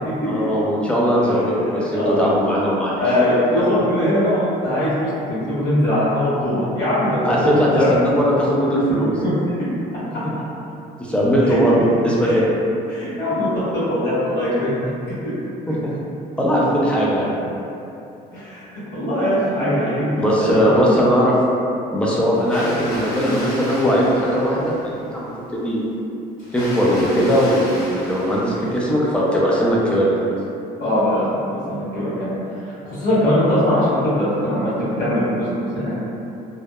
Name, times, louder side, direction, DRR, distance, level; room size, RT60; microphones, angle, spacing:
voice 1, 0.3-3.3 7.2-9.1 11.0-11.8 12.0-12.5 15.7-15.9 16.4-17.3 20.2-21.3 21.9-25.8 26.5-30.3, equal, 5° left, -5 dB, 0.4 m, -19 dB
voice 2, 1.9-2.2 3.0-7.9 9.2-9.3 11.4-11.8 12.2-12.4 12.9-14.9 15.2-15.3 18.3-20.7 30.8-34.7 35.0-35.9, left 1 dB, 70° left, -11 dB, 1.3 m, -21 dB
Water, 22.3-25.1 26.4-29.2, left 1 dB, 50° left, 1.4 m, -34 dB
2.7 x 2.0 x 2.2 m, 2.8 s
cardioid pair, 110°, 17 cm